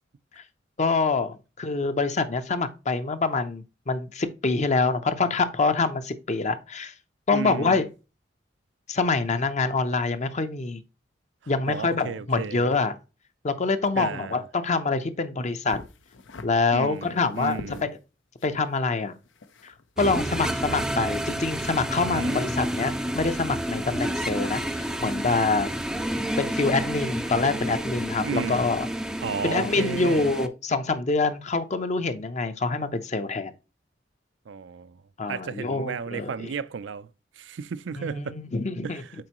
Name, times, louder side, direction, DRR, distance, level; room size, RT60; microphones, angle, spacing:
voice 1, 0.8-6.9 7.3-7.9 8.9-10.8 11.5-13.0 13.4-15.8 16.4-18.0 18.4-19.1 19.6-25.7 26.4-28.9 29.4-33.5 35.2-36.5 38.0-39.0, left 3 dB, 40° left, 0.7 m, -26 dB
voice 2, 7.3-7.8 11.4-12.7 14.0-14.4 16.7-17.9 22.1-22.5 28.2-28.7 29.2-30.3 34.5-35.0 35.3-37.1 37.4-38.4 38.8-39.1, right 5 dB, 70° right, 0.4 m, -33 dB
sound 1, 15.7-16.5 16.9-17.9 18.4-19.9 20.2-20.5, left 3 dB, 85° left, 0.8 m, -44 dB
sound 2, 20.0-30.5, right 1 dB, 5° right, 0.4 m, -30 dB
7.6 x 4.5 x 2.9 m
head